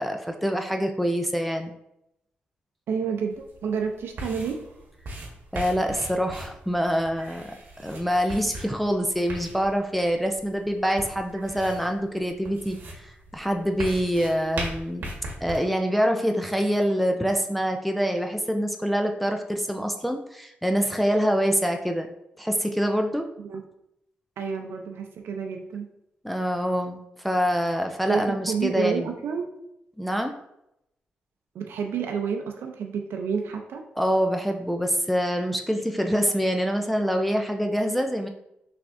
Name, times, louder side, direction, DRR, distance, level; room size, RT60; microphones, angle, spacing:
voice 1, 0.0-1.7 5.5-7.5 7.8-15.1 15.4-22.1 22.4-23.3 26.2-29.1 30.0-30.4 34.0-38.3, equal, ahead, 4 dB, 0.3 m, -25 dB
voice 2, 2.9-4.5 23.4-23.6 24.4-25.9 28.1-29.5 31.5-33.8, right 6 dB, 80° right, 3 dB, 0.5 m, -29 dB
sound 1, 3.3-15.6, right 1 dB, 55° right, 1.1 m, -39 dB
5.9 x 3.3 x 2.5 m, 0.82 s
wide cardioid pair, 160°, 4 cm